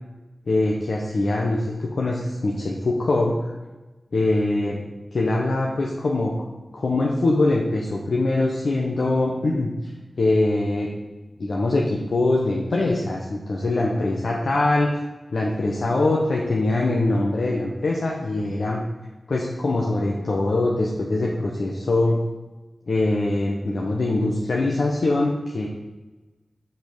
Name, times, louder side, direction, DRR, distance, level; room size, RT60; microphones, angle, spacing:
voice 1, 0.5-3.5 4.1-4.8 5.1-6.5 6.7-9.9 10.2-10.9 11.4-15.0 15.3-18.8 19.3-22.2 22.9-25.7, left 2 dB, 70° left, -2 dB, 1.1 m, -23 dB
5.9 x 5.9 x 6.8 m, 1.2 s
wide cardioid pair, 90°, 0 cm